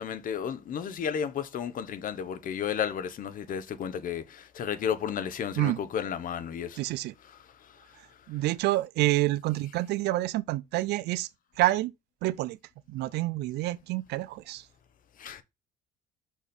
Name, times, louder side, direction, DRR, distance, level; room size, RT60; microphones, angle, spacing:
voice 1, 0.0-6.8 15.2-15.4, left 8 dB, 55° left, 1.0 m, -33 dB
voice 2, 6.8-7.1 8.3-11.3 11.6-11.9 12.2-12.6 12.9-14.6, right 17 dB, 80° right, 0.6 m, -28 dB
6.0 x 4.4 x 5.2 m
cardioid pair, 110°, 17 cm